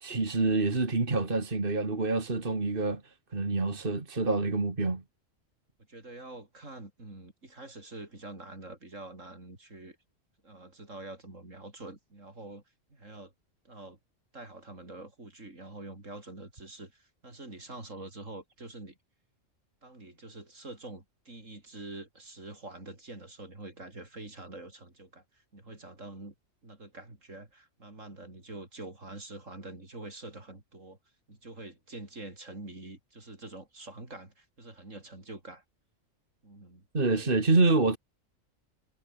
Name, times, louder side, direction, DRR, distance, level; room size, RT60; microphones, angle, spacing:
voice 1, 0.0-3.0 3.3-5.0 36.9-38.0, right 3 dB, 40° right, 2.6 m, -27 dB
voice 2, 5.9-10.0 10.4-12.6 12.9-13.3 13.7-14.0 14.3-19.0 19.8-26.3 26.6-31.0 31.3-35.6 36.4-36.8 37.1-37.3, right 2 dB, 70° right, 5.5 m, -46 dB
omnidirectional pair, 1.4 m